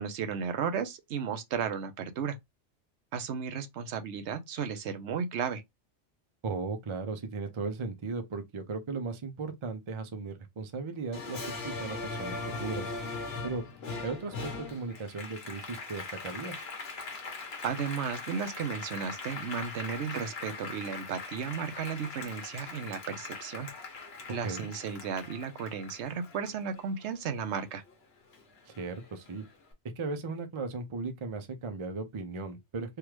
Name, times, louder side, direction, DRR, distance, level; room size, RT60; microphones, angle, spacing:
voice 1, 0.0-2.4 3.1-5.6 17.6-23.7 24.3-27.8, right 6 dB, 75° right, 0.9 m, -34 dB
voice 2, 6.4-12.9 13.4-13.6 14.0-16.6 24.4-24.7 28.7-29.4 30.0-33.0, right 4 dB, 35° right, 0.5 m, -37 dB
Applause, 11.1-27.9 28.3-29.5, left 3 dB, 65° left, 1.2 m, -41 dB
3.4 x 2.4 x 3.0 m
omnidirectional pair, 1.2 m